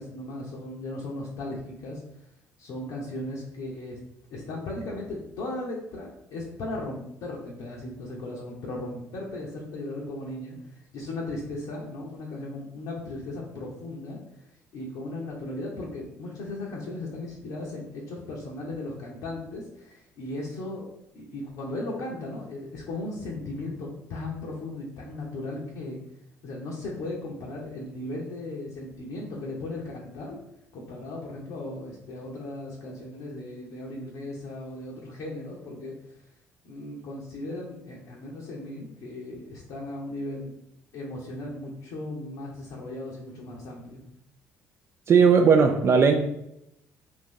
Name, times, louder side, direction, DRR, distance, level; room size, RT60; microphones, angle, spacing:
voice 1, 0.0-2.0 2.6-4.0 4.3-26.0 26.4-30.4 30.7-36.2 36.6-40.5 40.9-44.0, left 2 dB, 70° left, -3 dB, 0.6 m, -37 dB
voice 2, 45.1-46.1, right 5 dB, 45° right, 4 dB, 0.3 m, -17 dB
2.6 x 2.5 x 3.7 m, 0.79 s
hypercardioid pair, 60°, 6 cm